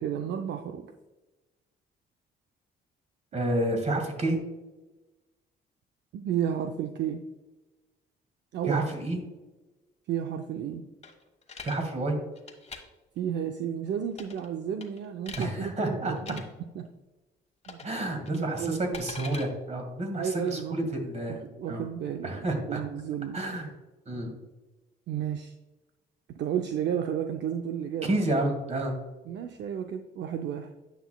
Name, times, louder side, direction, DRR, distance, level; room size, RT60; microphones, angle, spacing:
voice 1, 0.0-0.9 6.1-7.2 8.5-8.8 10.1-10.8 13.2-16.4 16.8-16.9 17.7-17.8 18.3-19.0 20.2-20.8 21.3-23.4 25.1-25.5 26.4-28.1 29.3-30.7, right 9 dB, 60° right, 5 dB, 0.5 m, -32 dB
voice 2, 3.3-4.4 8.7-9.2 11.6-12.2 15.3-16.4 17.8-21.4 21.7-21.9 22.2-22.8 23.3-23.7 24.1-24.3 28.0-28.9, right 1 dB, 35° right, 4 dB, 1.8 m, -29 dB
sound 1, 11.0-11.8 12.4-12.8 14.1-14.5 14.8-15.5 16.2-16.4 17.6-18.0 18.3-19.5, left 4 dB, 35° left, 1.2 m, -42 dB
9.2 x 5.8 x 2.2 m, 1.1 s
cardioid pair, 90°, 20 cm